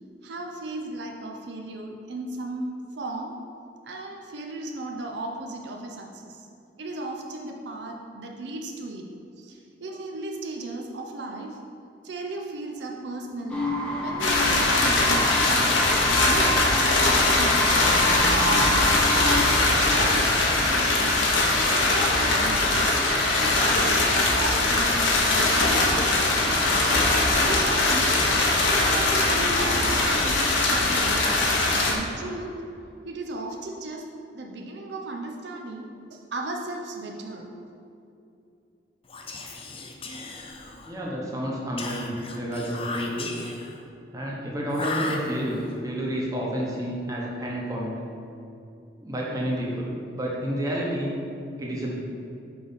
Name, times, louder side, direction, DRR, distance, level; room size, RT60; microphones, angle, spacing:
voice 1, 0.2-3.4 3.8-6.5 6.8-9.1 9.4-11.6 12.0-15.7 16.3-17.8 18.3-21.2 21.7-22.9 23.4-26.9 27.3-28.2 28.7-31.4 31.6-32.6 33.0-37.5, right 2 dB, 70° right, 1 dB, 0.6 m, -35 dB
sound 1, 13.5-19.5, left 1 dB, 5° left, 0.9 m, -29 dB
sound 2, 14.2-31.9, left 2 dB, 90° left, 1.1 m, -21 dB
Whispering, 39.0-41.0 41.8-43.8 44.7-45.7, left 3 dB, 30° left, 0.5 m, -36 dB
voice 2, 40.9-43.4 44.1-48.0 49.0-51.1 51.6-52.0, equal, 20° right, -4 dB, 1.1 m, -30 dB
6.0 x 4.7 x 5.6 m, 2.7 s
head